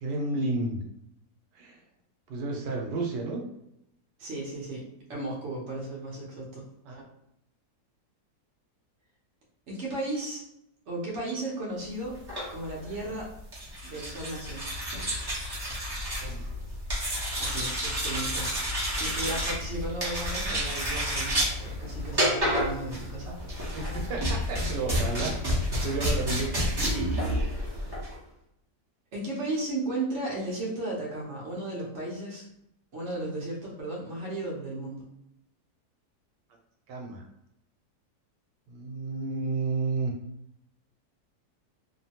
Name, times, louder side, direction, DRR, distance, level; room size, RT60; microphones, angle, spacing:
voice 1, 0.0-0.8 1.5-1.8 2.3-3.4 6.8-7.1 16.2-16.4 23.3-23.4 23.7-25.3 25.8-26.6 36.9-37.2 38.7-40.1, right 3 dB, 85° right, 1 dB, 1.3 m, -31 dB
voice 2, 4.2-6.7 9.7-10.4 10.9-12.2 12.5-13.3 13.8-14.7 17.4-18.5 18.7-23.4 26.8-27.1 27.4-27.8 29.1-32.5 32.9-35.0, right 2 dB, 55° right, -4 dB, 0.9 m, -35 dB
sound 1, 12.1-28.1, equal, 25° right, 0.6 m, -30 dB
3.0 x 2.1 x 2.8 m, 0.79 s
omnidirectional pair, 1.8 m